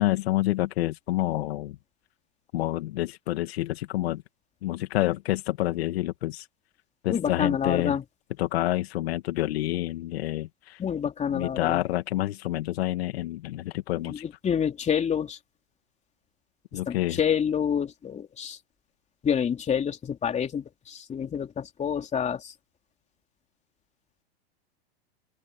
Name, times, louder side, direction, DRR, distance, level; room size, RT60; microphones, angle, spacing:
voice 1, 0.0-1.8 2.5-4.2 4.6-6.5 7.0-8.0 8.4-10.8 11.3-14.2 16.7-17.2, left 15 dB, 70° left, 2.2 m, -28 dB
voice 2, 7.1-8.0 10.8-11.8 14.0-15.4 16.9-18.6 19.2-22.5, left 8 dB, 20° left, 3.3 m, -28 dB
open air
hypercardioid pair, 115°, 32 cm